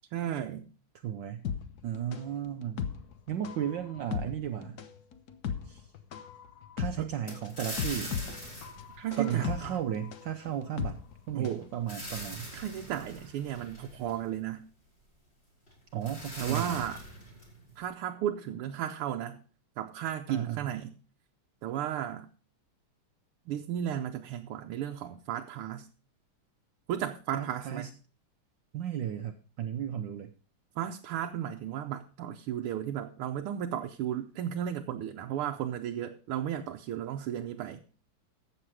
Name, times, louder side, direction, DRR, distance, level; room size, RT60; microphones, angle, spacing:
voice 1, 0.1-0.7 7.0-7.1 9.0-9.8 11.3-11.7 12.5-14.7 16.4-17.0 17.8-19.4 19.8-21.0 21.6-22.3 23.5-25.9 26.9-27.9 30.8-37.8, right 10 dB, 90° right, 3 dB, 1.7 m, -34 dB
voice 2, 1.0-1.5 1.8-2.8 3.3-4.8 5.7-5.9 6.8-8.1 9.2-11.0 11.3-12.5 15.9-16.8 20.3-20.7 27.3-27.9 28.7-30.3, right 10 dB, 65° right, 7 dB, 1.3 m, -34 dB
sound 1, 1.4-11.7 12.0-12.1, left 8 dB, 55° left, 1.3 m, -37 dB
sound 2, 7.3-10.0 11.5-14.5 15.7-15.8 16.0-17.8, equal, 25° left, 6.8 m, -42 dB
13.5 x 7.7 x 4.8 m, 0.37 s
omnidirectional pair, 2.4 m